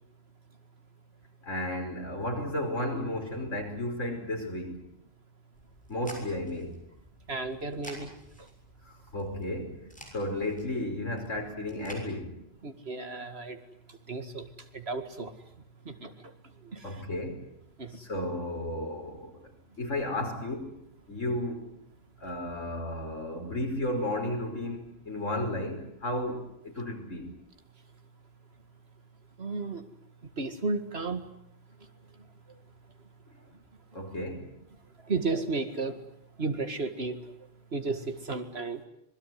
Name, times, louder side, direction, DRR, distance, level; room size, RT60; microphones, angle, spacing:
voice 1, 1.4-4.8 5.9-6.8 8.8-9.8 10.1-12.3 16.8-17.4 17.9-19.4 19.8-20.8 21.1-21.7 22.2-27.3 33.9-34.5, left 1 dB, 80° left, 3 dB, 5.7 m, -33 dB
sound 1, 5.5-12.0, equal, 5° left, 7.0 m, -51 dB
voice 2, 7.3-8.1 12.6-13.6 14.1-14.4 14.7-15.3 15.9-16.1 16.7-16.8 17.8-17.9 29.4-29.8 30.4-31.2 35.1-35.9 36.4-37.2 37.7-38.8, right 3 dB, 55° right, 8 dB, 2.4 m, -33 dB
26.0 x 21.0 x 9.5 m, 0.78 s
omnidirectional pair, 1.3 m